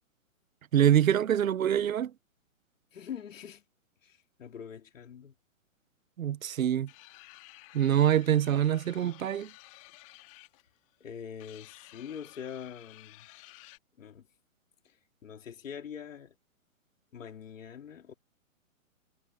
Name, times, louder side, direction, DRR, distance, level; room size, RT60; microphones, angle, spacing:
voice 1, 0.7-2.1 6.2-6.9 7.7-9.5, right 10 dB, 75° right, 1.0 m, -25 dB
voice 2, 2.9-3.6 4.0-5.3 11.0-13.3 14.0-14.3 14.9-15.0 15.2-16.4 17.1-18.1, left 8 dB, 65° left, 3.6 m, -43 dB
sound 1, 6.9-13.8, left 22 dB, 25° left, 2.0 m, -54 dB
hypercardioid pair, 165°, 41 cm